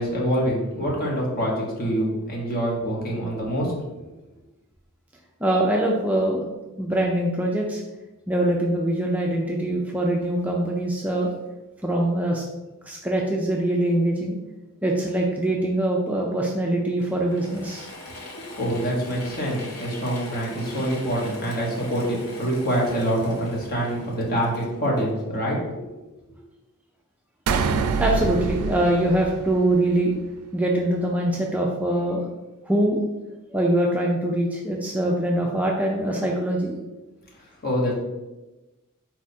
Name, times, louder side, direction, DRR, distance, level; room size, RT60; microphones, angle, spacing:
voice 1, 0.0-3.7 18.6-25.9 37.4-37.9, equal, 45° left, -3 dB, 1.1 m, -25 dB
voice 2, 5.4-6.4 6.8-7.8 8.3-11.3 11.8-12.4 12.9-14.4 14.8-17.9 28.0-30.1 30.5-32.3 32.7-33.0 33.5-36.8, right 1 dB, 5° right, -1 dB, 0.3 m, -23 dB
Mechanisms / Drill, 17.0-25.6, left 2 dB, 75° left, 0.8 m, -41 dB
sound 1, 27.5-30.0, right 5 dB, 85° right, 0.4 m, -26 dB
4.3 x 2.4 x 4.1 m, 1.1 s
head